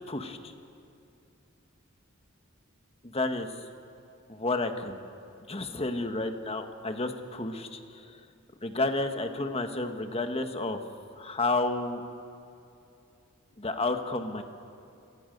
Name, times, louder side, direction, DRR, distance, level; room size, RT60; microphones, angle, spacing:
voice 1, 0.1-0.5 3.1-3.5 4.3-5.0 5.5-8.0 8.6-10.8 11.2-12.0 13.6-14.4, left 2 dB, 30° left, 6 dB, 1.4 m, -31 dB
28.0 x 22.0 x 5.3 m, 2.7 s
head